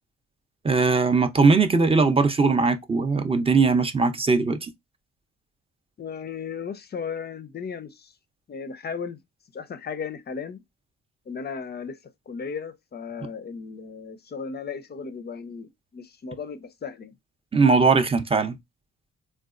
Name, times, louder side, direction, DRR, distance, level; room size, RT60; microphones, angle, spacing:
voice 1, 0.6-4.7 17.5-18.6, right 4 dB, 20° right, 0.5 m, -20 dB
voice 2, 6.0-8.1 8.5-9.2 9.5-10.6 11.3-12.0 12.3-17.1, left 6 dB, 35° left, 0.5 m, -35 dB
3.9 x 2.2 x 2.4 m
cardioid pair, 90°, 30 cm